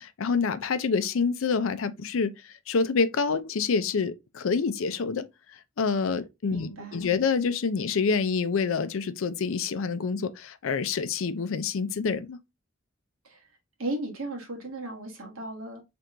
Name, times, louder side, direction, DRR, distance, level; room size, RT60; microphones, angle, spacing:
voice 1, 0.0-2.3 2.7-5.2 5.8-12.4, left 5 dB, 70° left, 0.5 m, -27 dB
voice 2, 6.5-7.1 13.2-13.4 13.8-15.8, right 2 dB, 90° right, 1.5 m, -36 dB
4.4 x 3.4 x 2.5 m
head